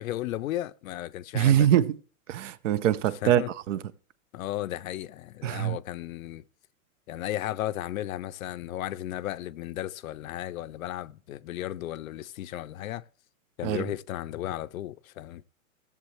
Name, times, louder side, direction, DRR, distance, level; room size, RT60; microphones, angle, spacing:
voice 1, 0.0-1.7 3.2-3.5 4.3-6.4 7.1-13.0 13.6-15.4, left 13 dB, 70° left, 0.6 m, -34 dB
voice 2, 1.3-2.0 2.3-3.8 5.4-5.8 13.6-13.9, right 11 dB, 60° right, 0.7 m, -24 dB
16.5 x 7.2 x 3.2 m
hypercardioid pair, 155°, 42 cm